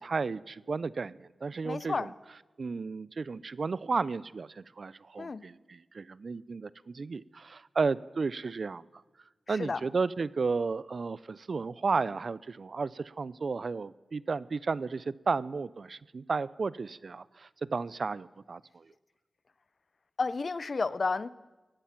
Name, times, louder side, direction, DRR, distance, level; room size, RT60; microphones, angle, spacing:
voice 1, 0.0-2.1 2.6-8.8 9.5-18.8, right 4 dB, 60° right, 19 dB, 0.3 m, -33 dB
voice 2, 1.6-2.1 5.2-5.4 9.6-9.8 20.2-21.3, left 4 dB, 55° left, 17 dB, 0.5 m, -31 dB
16.5 x 11.5 x 5.8 m, 1.2 s
wide cardioid pair, 65°, 0 cm